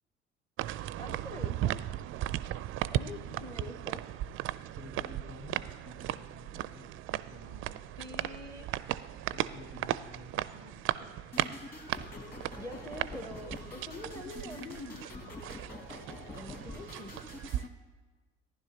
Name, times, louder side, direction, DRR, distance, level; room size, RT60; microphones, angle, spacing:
sound 1, 0.6-17.7, right 13 dB, 40° right, 0.4 m, -37 dB
voice 1, 1.0-1.8 2.9-4.0 8.0-8.7 12.6-15.1 16.3-17.1, left 1 dB, 10° left, 8 dB, 0.7 m, -45 dB
voice 2, 2.8-3.7 4.7-6.9 7.3-7.8 9.3-11.2, left 2 dB, 85° left, 2 dB, 1.4 m, -51 dB
sound 2, 11.3-17.7, left 2 dB, 30° left, 2.4 m, -46 dB
15.0 x 10.0 x 2.9 m, 1.3 s
figure-of-eight pair, 55°, 32 cm